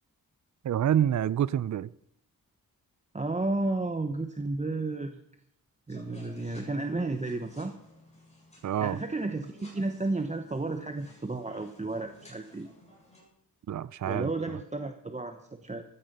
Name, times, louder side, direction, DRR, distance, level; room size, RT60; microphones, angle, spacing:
voice 1, 0.6-1.9 8.6-9.0 13.7-14.6, right 10 dB, 55° right, 0.5 m, -27 dB
voice 2, 3.1-5.2 5.9-7.7 8.8-12.7 14.1-15.8, right 2 dB, 20° right, 0.9 m, -32 dB
sound 1, 5.9-13.2, left 1 dB, 20° left, 7.6 m, -55 dB
15.5 x 13.5 x 5.4 m
wide cardioid pair, 140°, 36 cm